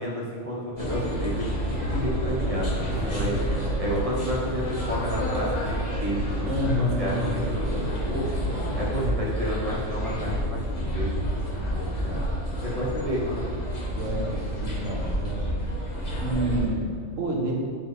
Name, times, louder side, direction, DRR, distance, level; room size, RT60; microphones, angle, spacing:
voice 1, 0.0-3.4 3.8-8.3 8.8-12.2 12.6-13.4, equal, 30° right, -5 dB, 1.3 m, -31 dB
sound 1, 0.8-16.7, equal, 35° left, 1.5 m, -29 dB
voice 2, 3.0-3.7 6.5-7.5 13.8-15.5 16.2-17.6, equal, 90° right, -1 dB, 1.5 m, -29 dB
8.3 x 4.7 x 3.4 m, 2.1 s
omnidirectional pair, 1.3 m